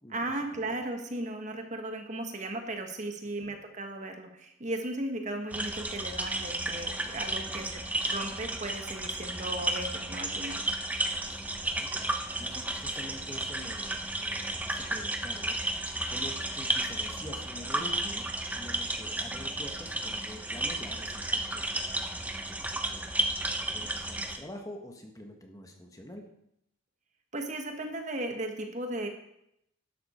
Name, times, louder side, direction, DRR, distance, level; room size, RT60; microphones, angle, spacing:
voice 1, 0.1-10.6 27.3-29.1, right 1 dB, 35° right, 5 dB, 1.4 m, -36 dB
sound 1, 5.5-24.4, right 1 dB, 10° right, 0.8 m, -33 dB
voice 2, 11.2-15.6 16.1-18.3 18.5-23.1 23.7-26.2, left 1 dB, 15° left, 3 dB, 1.3 m, -46 dB
12.0 x 11.5 x 4.3 m, 0.77 s
head